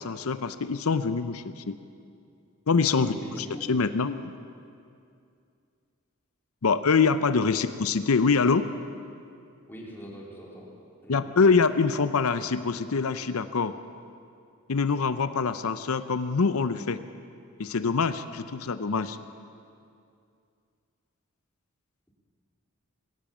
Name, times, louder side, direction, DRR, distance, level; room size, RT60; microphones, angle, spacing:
voice 1, 0.0-1.7 2.7-4.3 6.6-8.7 11.1-13.7 14.7-17.0 17.6-19.2, left 4 dB, 85° left, 11 dB, 0.7 m, -25 dB
voice 2, 2.9-3.6 7.5-7.6 9.7-10.7 11.0-11.3, equal, 10° left, -4 dB, 3.9 m, -41 dB
20.5 x 17.5 x 7.3 m, 2.4 s
head